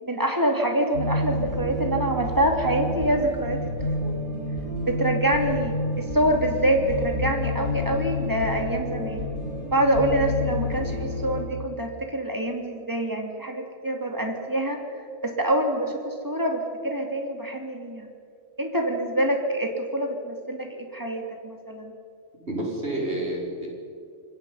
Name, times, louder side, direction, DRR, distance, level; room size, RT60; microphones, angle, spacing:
voice 1, 0.0-4.2 4.9-9.2 9.7-14.8 15.2-18.1 18.6-21.9, right 1 dB, 15° right, 2 dB, 2.7 m, -26 dB
sound 1, 0.9-11.4, left 2 dB, 55° left, 6.4 m, -29 dB
voice 2, 22.4-23.7, right 1 dB, 50° right, -3 dB, 5.7 m, -29 dB
26.5 x 21.0 x 5.7 m, 2.4 s
omnidirectional pair, 1.4 m